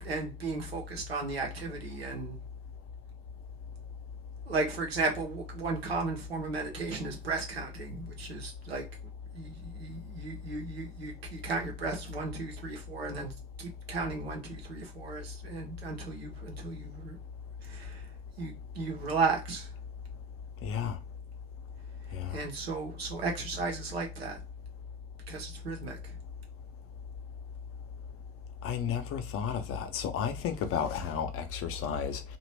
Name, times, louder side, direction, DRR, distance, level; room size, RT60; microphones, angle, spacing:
voice 1, 0.0-2.4 4.5-8.8 9.3-13.3 13.6-17.2 17.6-18.0 18.4-19.7 22.3-24.4 25.3-26.2, right 4 dB, 85° right, 1.0 m, -35 dB
voice 2, 20.6-21.0 22.1-22.4 28.6-32.2, left 7 dB, 45° left, 0.8 m, -32 dB
2.9 x 2.5 x 3.3 m
figure-of-eight pair, 60°, 30 cm